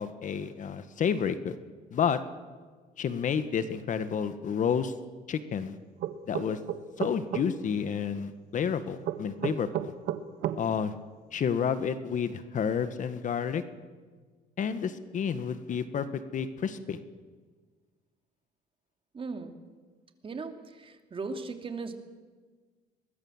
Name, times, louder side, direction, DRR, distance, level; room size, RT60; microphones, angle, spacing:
voice 1, 0.0-1.6 1.9-2.2 3.0-4.9 5.3-5.8 6.3-6.6 7.0-9.9 10.6-10.9 11.3-13.6 14.6-16.1 16.3-17.0, left 7 dB, 50° left, 11 dB, 1.5 m, -30 dB
sound 1, 6.0-7.5 9.0-10.6, right 11 dB, 75° right, 1.6 m, -31 dB
voice 2, 19.1-19.5 20.2-22.0, right 4 dB, 30° right, 5 dB, 2.8 m, -37 dB
23.5 x 20.5 x 7.4 m, 1.4 s
cardioid pair, 110°, 17 cm